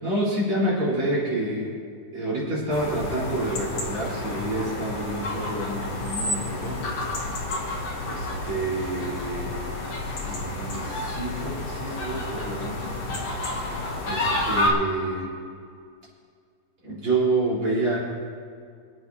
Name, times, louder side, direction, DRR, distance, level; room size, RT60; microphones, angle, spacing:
voice 1, 0.0-1.7 2.1-6.8 8.0-9.6 10.2-12.8 13.3-15.3 16.8-18.0, right 2 dB, 40° right, -8 dB, 4.8 m, -28 dB
sound 1, 2.7-14.7, left 2 dB, 55° left, 2.5 m, -30 dB
27.0 x 9.1 x 2.8 m, 2.2 s
omnidirectional pair, 3.8 m